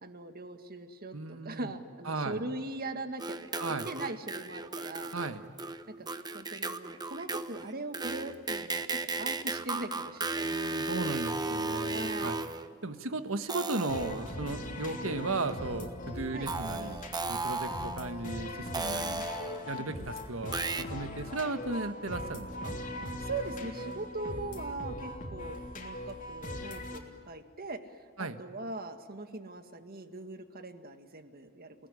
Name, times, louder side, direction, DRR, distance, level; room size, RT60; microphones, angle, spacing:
voice 1, 0.0-5.1 5.9-6.1 6.3-10.8 11.9-12.4 16.3-16.5 19.7-20.1 23.2-27.8 28.4-31.8, right 2 dB, 45° right, 7 dB, 1.9 m, -40 dB
voice 2, 1.1-1.7 2.0-2.4 3.6-3.9 5.1-5.4 10.4-12.4 12.8-17.0 17.3-19.3 19.7-22.8 28.2-28.4, right 3 dB, 70° right, 9 dB, 1.6 m, -36 dB
sound 1, 3.2-12.7 13.5-14.4 15.5-15.6 16.5-18.2 18.7-19.8 20.5-20.8, right 3 dB, 20° right, 1.0 m, -35 dB
sound 2, 13.9-27.0, left 1 dB, 40° left, 3.2 m, -40 dB
29.5 x 19.0 x 9.9 m, 2.2 s
head